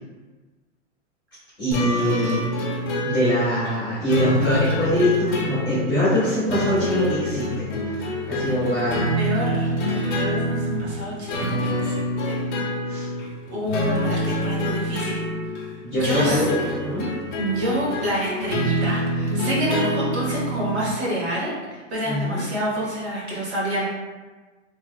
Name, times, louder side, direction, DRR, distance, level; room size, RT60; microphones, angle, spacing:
voice 1, 1.6-2.4 3.0-7.7 8.0-9.2 12.9-13.1 15.8-17.1 22.0-22.4, equal, 5° right, -24 dB, 0.3 m, -23 dB
sound 1, 1.7-20.9, equal, 40° left, 0.6 m, -27 dB
voice 2, 9.2-12.4 13.5-15.2 15.9-16.4 17.4-23.8, equal, 55° right, -6 dB, 1.3 m, -28 dB
3.2 x 2.1 x 2.3 m, 1.3 s
hypercardioid pair, 165°, 39 cm